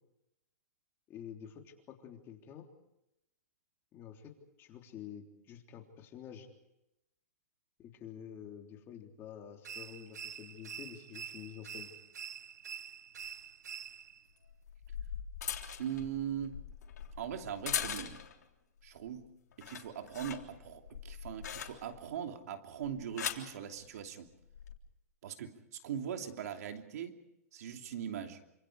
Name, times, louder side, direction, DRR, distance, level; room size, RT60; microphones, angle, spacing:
voice 1, 1.1-2.7 3.9-4.3 4.6-6.5 7.8-11.9, left 9 dB, 25° left, 3 dB, 3.5 m, -49 dB
sound 1, 9.6-14.3, right 8 dB, 85° right, 0.9 m, -46 dB
sound 2, 13.2-13.3 14.5-18.4 18.9-19.2 19.5-22.1 22.8-23.5 24.4-24.7, left 8 dB, 80° left, 3.4 m, -41 dB
voice 2, 15.8-16.6 17.2-18.2 18.8-19.3 19.6-24.3 25.2-27.2 27.5-28.4, right 9 dB, 65° right, 5 dB, 3.0 m, -40 dB
28.5 x 26.5 x 5.0 m, 0.86 s
hypercardioid pair, 145°, 9 cm